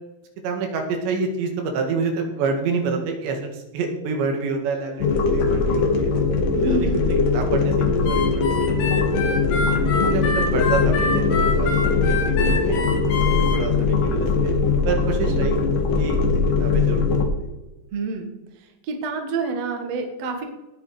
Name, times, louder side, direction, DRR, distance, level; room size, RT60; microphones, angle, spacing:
voice 1, 0.4-6.1 6.6-8.4 8.8-9.6 10.0-13.0 13.5-15.7 16.0-16.2 16.6-17.0, right 4 dB, 70° right, 3 dB, 4.0 m, -28 dB
sound 1, 5.0-17.2, left 4 dB, 60° left, 2.5 m, -21 dB
voice 2, 6.5-7.0 17.9-18.3 18.9-20.4, right 3 dB, 55° right, 4 dB, 1.9 m, -27 dB
Harmonica, 8.0-13.6, left 4 dB, 80° left, 4.5 m, -27 dB
19.0 x 6.6 x 4.9 m, 1.0 s
omnidirectional pair, 5.3 m